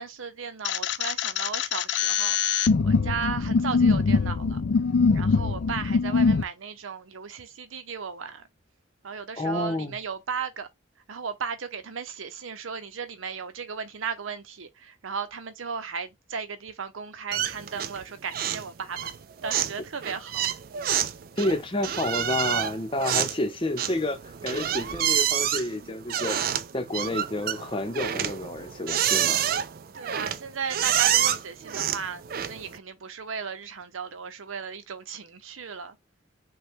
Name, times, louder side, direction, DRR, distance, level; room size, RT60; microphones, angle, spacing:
voice 1, 0.0-2.4 2.8-4.6 5.1-8.4 9.0-10.7 11.1-19.1 19.4-20.4 20.8-20.9 29.9-36.0, right 6 dB, 85° right, 0.7 m, -35 dB
sound 1, 0.6-6.4, left 5 dB, 60° left, 0.4 m, -23 dB
voice 2, 9.4-10.0 21.4-26.4 26.7-29.4, left 1 dB, 25° left, 0.7 m, -29 dB
sound 2, 17.3-18.0 18.3-18.7 19.0-32.8, right 10 dB, 45° right, 0.3 m, -28 dB
5.6 x 2.3 x 3.6 m
head